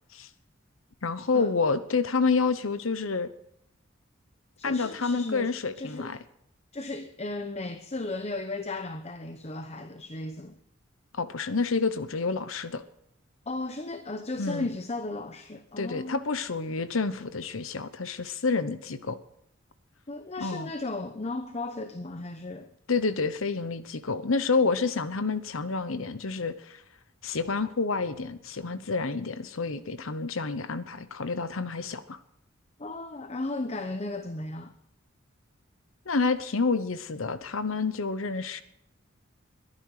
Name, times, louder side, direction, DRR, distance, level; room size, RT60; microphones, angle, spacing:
voice 1, 1.0-3.3 4.6-6.2 11.1-12.8 14.4-14.7 15.8-19.2 20.4-20.7 22.9-26.8 27.2-32.2 36.1-38.6, left 4 dB, 90° left, 13 dB, 1.0 m, -28 dB
voice 2, 4.6-6.1 6.7-10.6 13.5-16.2 20.1-22.7 32.8-34.7, left 2 dB, 30° left, 8 dB, 0.9 m, -35 dB
22.0 x 11.0 x 4.9 m, 0.77 s
head